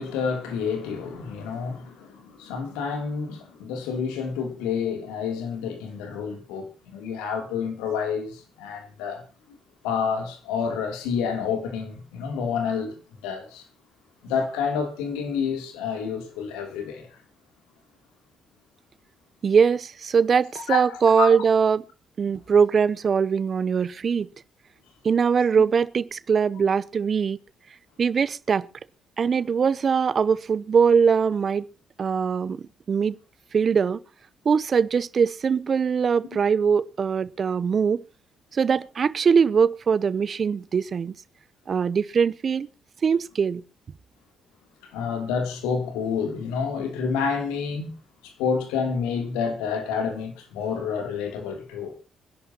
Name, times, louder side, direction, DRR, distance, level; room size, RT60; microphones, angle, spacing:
voice 1, 0.0-9.6 9.8-13.7 14.2-17.2 20.6-21.4 44.8-47.9 48.2-51.9, left 6 dB, 85° left, 3.0 m, -29 dB
voice 2, 19.4-21.8 22.2-24.3 25.0-27.4 28.0-28.7 29.2-31.7 32.0-33.2 33.5-34.0 34.4-38.0 38.5-41.1 41.7-42.7 43.0-43.6, right 6 dB, 50° right, 0.7 m, -22 dB
25.0 x 11.0 x 2.9 m
supercardioid pair, 55°, 0 cm